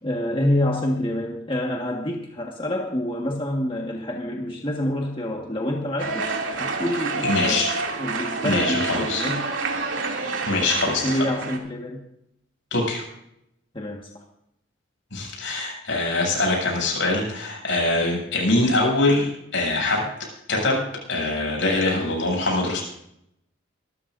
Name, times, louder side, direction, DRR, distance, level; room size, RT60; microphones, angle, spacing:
voice 1, 0.0-7.7 8.0-9.5 10.8-12.1 13.7-14.1, left 1 dB, 25° left, 1 dB, 1.6 m, -27 dB
sound 1, 6.0-11.6, right 3 dB, 85° right, 2.7 m, -28 dB
voice 2, 7.3-7.8 8.4-9.2 10.4-11.2 12.7-13.0 15.1-20.1 20.5-20.8 21.1-22.8, left 2 dB, 80° left, -1 dB, 7.5 m, -23 dB
24.5 x 14.0 x 2.6 m, 0.78 s
head